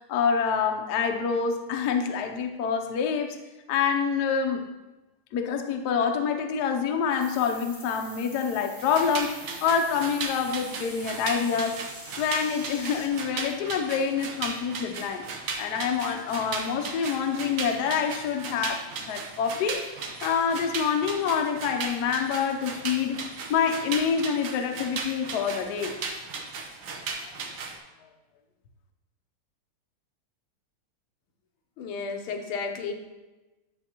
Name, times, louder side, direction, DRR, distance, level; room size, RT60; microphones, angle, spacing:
voice 1, 0.1-3.4 3.7-4.6 5.3-11.8 12.2-15.2 15.6-19.8 20.2-23.2 23.5-25.9, left 6 dB, 65° left, 5 dB, 1.1 m, -26 dB
sound 1, 7.1-13.1, right 1 dB, 15° right, 0.5 m, -45 dB
sound 2, 8.8-27.8, right 4 dB, 70° right, 1.6 m, -36 dB
voice 2, 31.8-32.9, left 5 dB, 85° left, 3 dB, 1.7 m, -32 dB
10.5 x 6.9 x 2.9 m, 1.1 s
omnidirectional pair, 2.2 m